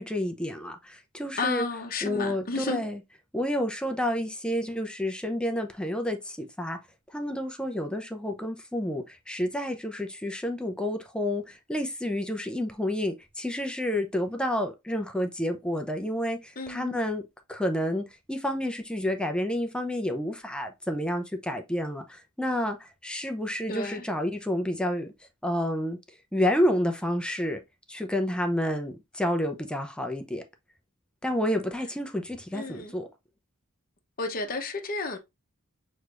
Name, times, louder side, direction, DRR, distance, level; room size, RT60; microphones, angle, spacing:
voice 1, 0.0-1.7 2.0-3.0 3.3-6.8 7.1-17.2 17.5-25.1 25.4-26.0 26.3-27.6 27.9-30.4 31.2-33.1, left 1 dB, 5° left, 0.6 m, -29 dB
voice 2, 1.4-2.8 16.6-17.0 23.7-24.0 32.5-32.9 34.2-35.2, left 3 dB, 40° left, 0.9 m, -32 dB
6.4 x 3.2 x 2.5 m
head